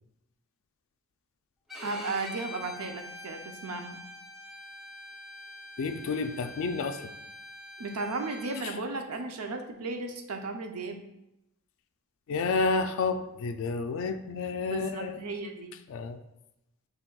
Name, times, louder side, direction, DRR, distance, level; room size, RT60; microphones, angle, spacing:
Bowed string instrument, 1.7-8.7, left 1 dB, ahead, 0.5 m, -45 dB
voice 1, 1.8-4.0 7.8-11.0 14.7-15.7, right 3 dB, 75° right, 5 dB, 0.6 m, -35 dB
voice 2, 5.8-7.0 8.6-8.7 12.3-15.3 15.9-16.2, left 4 dB, 60° left, 8 dB, 0.3 m, -30 dB
5.9 x 3.4 x 2.3 m, 0.89 s
head